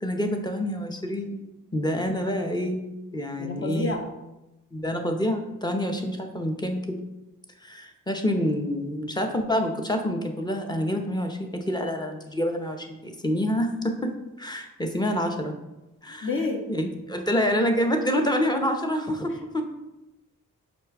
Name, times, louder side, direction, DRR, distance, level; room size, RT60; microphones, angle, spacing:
voice 1, 0.0-1.4 1.7-2.8 3.1-3.9 4.7-7.0 7.6-14.1 14.4-15.6 16.0-16.3 16.7-19.6, equal, 15° left, 4 dB, 0.6 m, -27 dB
voice 2, 3.4-4.0 16.2-16.6, left 3 dB, 40° left, 2 dB, 0.9 m, -28 dB
5.0 x 2.3 x 4.6 m, 0.97 s
cardioid pair, 65°, 31 cm